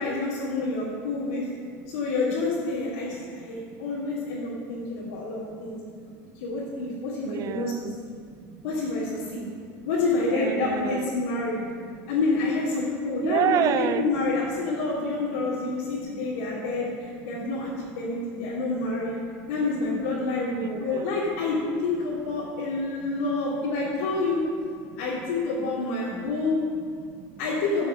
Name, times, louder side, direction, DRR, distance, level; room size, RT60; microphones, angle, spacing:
voice 1, 0.0-1.4 1.9-5.8 6.3-7.7 8.0-8.2 8.6-9.5 9.8-11.6 12.1-19.2 19.5-24.4 25.0-26.6 27.4-27.9, left 3 dB, 90° left, -9 dB, 3.1 m, -28 dB
voice 2, 3.3-3.8 4.7-5.2 5.5-6.5 6.9-8.7 10.2-11.1 11.8-12.1 13.2-14.1 14.6-14.7 15.3-16.5 17.3-17.6 18.0-18.2 18.5-18.6 19.1-19.5 20.5-21.3 22.4-22.5 23.0-23.1 24.8-25.0 26.2-27.4, right 11 dB, 50° right, 14 dB, 0.5 m, -33 dB
14.5 x 7.1 x 6.0 m, 2.3 s
supercardioid pair, 125°, 8 cm